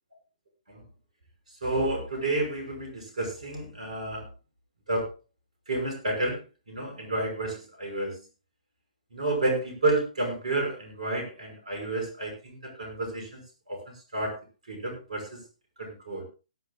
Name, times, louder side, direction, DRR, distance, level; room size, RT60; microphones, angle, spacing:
voice 1, 1.6-4.3 4.9-5.1 5.7-6.4 6.7-8.2 9.1-13.4 13.7-13.8 14.1-14.4 14.7-15.4 15.8-16.2, right 2 dB, 65° right, 4 dB, 5.5 m, -30 dB
17.5 x 12.5 x 2.4 m, 0.31 s
figure-of-eight pair, 125°, 4 cm